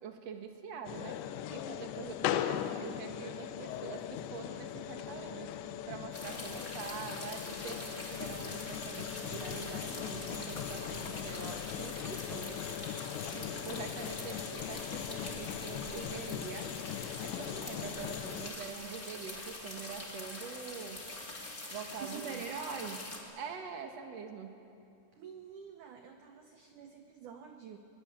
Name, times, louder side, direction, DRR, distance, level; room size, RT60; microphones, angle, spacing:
voice 1, 0.0-5.6 5.9-12.6 13.3-16.7 17.2-21.0 21.7-22.4 23.4-24.6, right 6 dB, 55° right, 4 dB, 2.0 m, -45 dB
sound 1, 0.9-18.5, left 11 dB, 90° left, 3.1 m, -39 dB
sound 2, 4.9-16.7, right 1 dB, 65° left, 4.1 m, -58 dB
sound 3, 6.1-23.2, left 2 dB, 20° left, 2.1 m, -44 dB
voice 2, 22.0-23.0 25.1-27.8, right 6 dB, 85° right, 5 dB, 1.8 m, -44 dB
22.0 x 21.0 x 8.5 m, 2.6 s
omnidirectional pair, 5.1 m